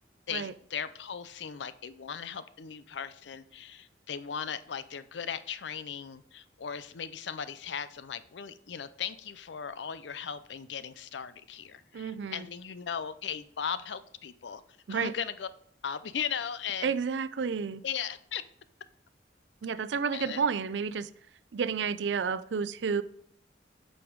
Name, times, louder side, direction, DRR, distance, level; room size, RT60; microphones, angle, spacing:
voice 1, 0.3-14.6 14.9-15.5 15.8-16.9 17.8-18.4 20.1-20.4, left 7 dB, 80° left, 14 dB, 0.5 m, -37 dB
voice 2, 11.9-12.5 14.9-15.1 16.8-17.8 19.6-21.1 21.5-23.0, right 6 dB, 80° right, 15 dB, 0.5 m, -30 dB
8.7 x 5.2 x 4.6 m, 0.65 s
head